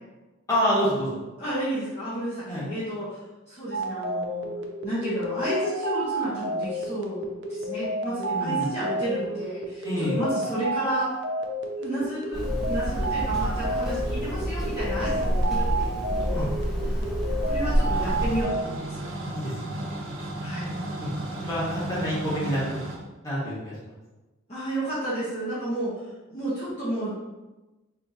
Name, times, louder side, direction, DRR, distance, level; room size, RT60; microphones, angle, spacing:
voice 1, 0.5-1.1 2.5-2.6 8.3-8.7 9.8-10.2 16.3-16.5 19.3-19.8 21.0-21.1 21.4-22.8 23.2-23.7, equal, 20° left, -9 dB, 1.5 m, -27 dB
voice 2, 1.4-3.2 3.5-4.5 4.8-7.2 7.5-11.0 11.8-16.4 16.8-17.0 17.4-19.0 20.4-20.7 24.5-25.9 26.3-27.1, equal, 35° left, -11 dB, 1.1 m, -32 dB
sound 1, 3.7-18.6, right 2 dB, 65° right, 0.5 m, -31 dB
Hammer, 12.3-18.4, equal, 5° right, 0.8 m, -28 dB
sound 2, 17.9-23.0, right 1 dB, 85° right, 1.0 m, -34 dB
4.4 x 3.0 x 2.7 m, 1.1 s
head